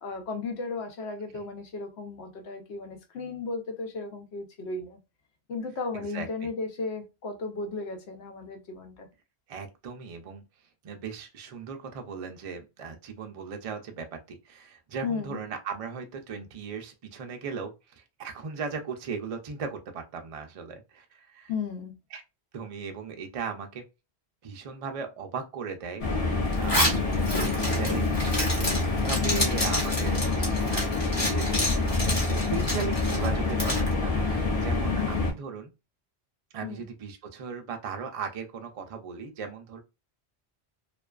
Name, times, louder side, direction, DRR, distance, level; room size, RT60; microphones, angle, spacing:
voice 1, 0.0-5.0 5.5-9.1 15.0-15.4 21.5-21.9 36.6-36.9, left 4 dB, 85° left, 0.9 m, -35 dB
voice 2, 5.9-6.3 9.5-10.4 10.8-21.5 22.1-22.2 22.5-23.9 24.4-28.1 28.9-31.8 32.2-35.7 36.5-39.8, right 5 dB, 55° right, 0.4 m, -37 dB
sound 1, 26.0-35.3, left 3 dB, 40° left, 0.7 m, -27 dB
Zipper (clothing), 26.5-33.9, left 1 dB, 25° left, 1.1 m, -30 dB
2.5 x 2.3 x 2.2 m
omnidirectional pair, 1.1 m